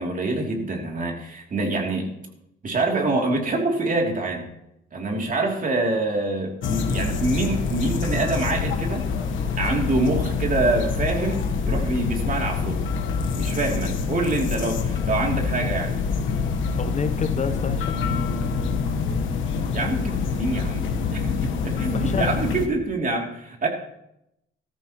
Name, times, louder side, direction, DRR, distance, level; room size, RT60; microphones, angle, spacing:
voice 1, 0.0-2.1 2.6-4.4 4.9-9.1 9.6-12.8 13.4-15.9 19.7-20.8 21.1-23.7, right 2 dB, 45° right, 1 dB, 2.8 m, -25 dB
sound 1, 6.6-22.7, left 5 dB, 75° left, 1.2 m, -26 dB
voice 2, 16.8-18.0 21.9-22.3, left 5 dB, 35° left, 10 dB, 0.7 m, -28 dB
14.5 x 13.5 x 3.0 m, 0.82 s
cardioid pair, 90°, 20 cm